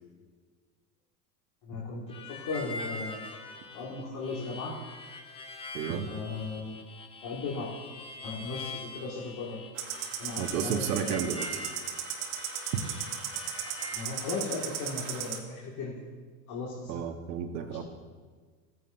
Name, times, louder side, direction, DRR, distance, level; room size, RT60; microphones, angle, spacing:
voice 1, 1.6-3.2 3.7-4.8 6.1-6.8 7.2-7.7 8.2-9.6 10.2-11.2 13.9-16.0 16.5-17.1 17.6-17.8, left 3 dB, 45° left, -5 dB, 2.0 m, -37 dB
Harmonica, 2.1-14.0, left 3 dB, 10° left, 0.5 m, -43 dB
voice 2, 5.7-6.1 10.4-11.6 12.7-12.8 16.9-17.8, right 8 dB, 80° right, 6 dB, 1.3 m, -32 dB
sound 1, 9.8-15.4, right 8 dB, 60° right, 1.8 m, -36 dB
16.5 x 9.1 x 2.6 m, 1.5 s
supercardioid pair, 125°, 48 cm